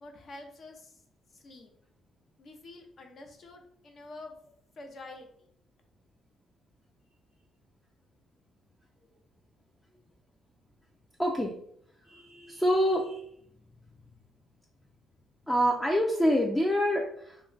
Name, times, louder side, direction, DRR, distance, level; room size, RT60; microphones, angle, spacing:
voice 1, 0.0-1.0 1.3-1.7 2.4-4.4 4.8-5.5, left 2 dB, 50° left, 4 dB, 0.6 m, -47 dB
voice 2, 11.2-11.5 12.0-13.3 15.5-17.4, equal, 10° left, -1 dB, 0.4 m, -26 dB
2.2 x 2.1 x 3.8 m, 0.66 s
cardioid pair, 90°, 0 cm